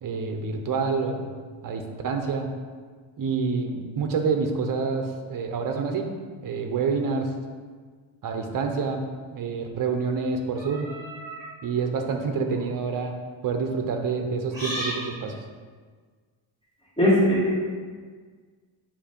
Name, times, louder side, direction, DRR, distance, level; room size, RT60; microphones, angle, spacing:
voice 1, 0.0-1.3 1.6-2.5 3.2-6.1 6.4-7.3 8.2-9.0 9.3-10.9 11.6-13.1 13.4-15.4, right 5 dB, 45° right, 4 dB, 0.7 m, -27 dB
sound 1, 10.6-11.5 12.4-12.6 14.5-15.0, right 1 dB, 10° right, 1.7 m, -34 dB
voice 2, 17.0-17.6, left 1 dB, 10° left, -8 dB, 1.7 m, -19 dB
7.1 x 2.7 x 5.1 m, 1.5 s
wide cardioid pair, 160°, 47 cm